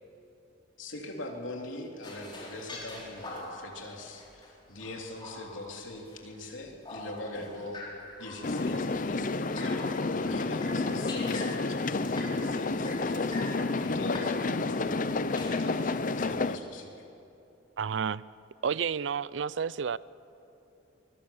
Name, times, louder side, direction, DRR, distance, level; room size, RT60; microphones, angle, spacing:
voice 1, 0.8-7.8 8.2-12.0 12.4-14.4 14.6-15.0 15.3-17.1, left 2 dB, 90° left, 1 dB, 3.2 m, -42 dB
sound 1, 2.0-6.4 6.7-10.3 10.6-11.6 12.0-12.3 12.7-14.3 15.1-16.3, left 2 dB, 25° left, 4.1 m, -44 dB
sound 2, 8.4-16.6, left 3 dB, 45° left, 0.6 m, -30 dB
voice 2, 17.8-18.2 18.6-20.0, right 6 dB, 70° right, 19 dB, 0.5 m, -30 dB
24.0 x 21.5 x 7.2 m, 2.9 s
head